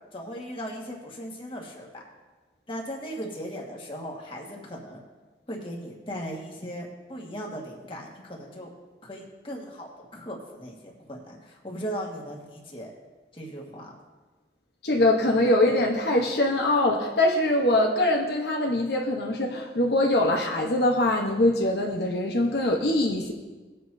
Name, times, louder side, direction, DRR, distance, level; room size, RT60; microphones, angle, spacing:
voice 1, 0.1-2.0 2.7-5.0 5.5-8.7 9.0-12.9 13.3-13.9, equal, 30° left, -1 dB, 1.6 m, -38 dB
voice 2, 14.8-23.3, left 1 dB, 70° left, 0 dB, 1.0 m, -23 dB
19.0 x 7.6 x 2.7 m, 1.3 s
head